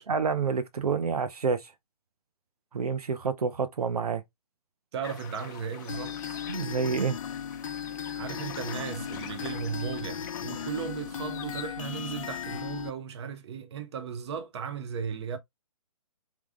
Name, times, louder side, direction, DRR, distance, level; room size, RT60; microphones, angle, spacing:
voice 1, 0.0-1.7 2.7-4.2 6.5-7.2, right 5 dB, 75° right, 0.8 m, -28 dB
voice 2, 4.9-6.4 8.2-15.4, right 7 dB, 45° right, 0.9 m, -36 dB
sound 1, 5.0-11.7, left 9 dB, 30° left, 0.7 m, -45 dB
sound 2, 5.9-12.9, left 8 dB, 60° left, 0.4 m, -37 dB
3.7 x 3.0 x 3.6 m
hypercardioid pair, 150°, 19 cm